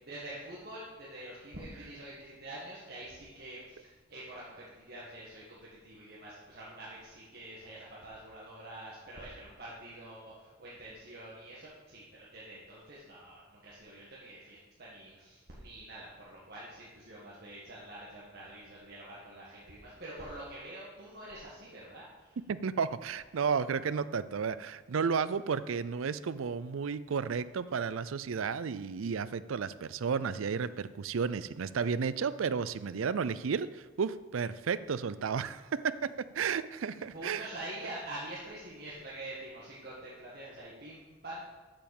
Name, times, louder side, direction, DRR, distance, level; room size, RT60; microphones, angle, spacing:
voice 1, 0.0-22.4 37.1-41.4, right 1 dB, 50° right, -7 dB, 1.8 m, -46 dB
voice 2, 22.5-37.5, right 6 dB, 85° right, 15 dB, 0.5 m, -33 dB
7.6 x 7.1 x 7.2 m, 1.3 s
head